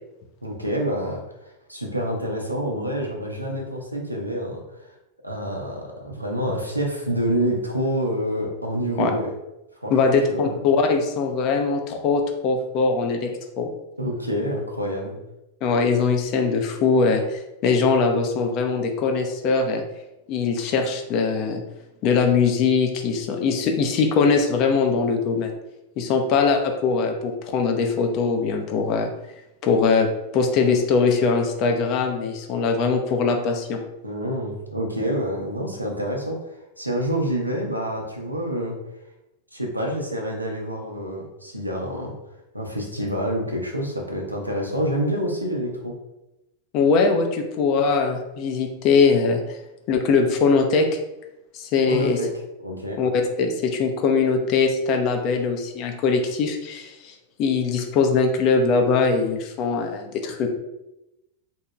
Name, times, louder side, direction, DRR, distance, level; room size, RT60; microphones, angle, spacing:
voice 1, 0.4-4.9 5.2-9.3 9.8-10.6 14.0-15.2 34.0-38.8 39.5-42.2 42.5-45.9 51.9-52.3 52.6-53.0, equal, 85° right, 0 dB, 0.5 m, -27 dB
voice 2, 9.9-13.7 15.6-19.8 20.3-21.6 22.0-25.5 26.0-29.1 29.6-30.1 30.3-33.8 46.7-49.4 49.9-50.9 51.5-52.2 53.0-60.5, left 4 dB, 40° left, 4 dB, 0.4 m, -21 dB
2.7 x 2.7 x 2.3 m, 0.93 s
figure-of-eight pair, 90°, 0 cm